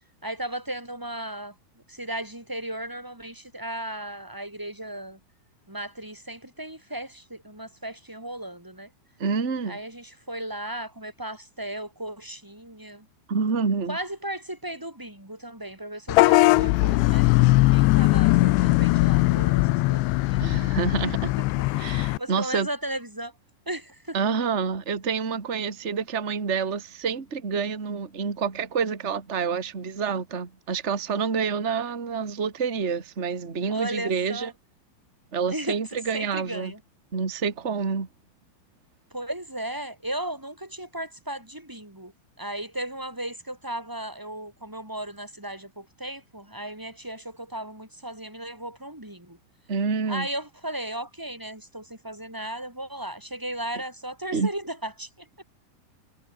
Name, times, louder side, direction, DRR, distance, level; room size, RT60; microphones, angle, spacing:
voice 1, 0.2-1.5 1.9-5.2 5.7-8.9 9.7-13.1 13.9-20.6 21.0-21.1 22.2-23.3 23.7-24.2 33.7-34.5 35.5-36.8 39.1-42.1 42.4-49.4 50.1-55.4, right 1 dB, 5° right, 6.2 m, -36 dB
voice 2, 9.2-9.8 13.3-14.0 20.4-21.3 21.7-22.7 24.1-34.5 35.3-36.7 37.1-38.1 49.7-50.3 54.3-54.5, right 5 dB, 40° right, 0.9 m, -28 dB
Vehicle horn car horn honking / Bus, 16.1-22.2, left 21 dB, 85° left, 2.7 m, -20 dB
omnidirectional pair, 5.6 m